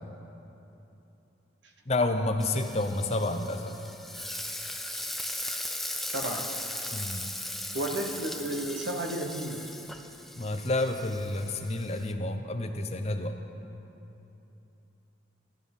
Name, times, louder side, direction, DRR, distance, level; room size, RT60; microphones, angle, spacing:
voice 1, 1.9-3.7 6.9-7.3 10.4-13.3, left 2 dB, 35° left, 6 dB, 0.7 m, -29 dB
Frying (food), 2.4-12.1, left 1 dB, ahead, 0.4 m, -38 dB
voice 2, 6.0-6.6 7.7-9.6, right 1 dB, 65° right, 3 dB, 1.2 m, -33 dB
13.0 x 12.0 x 5.5 m, 3.0 s
head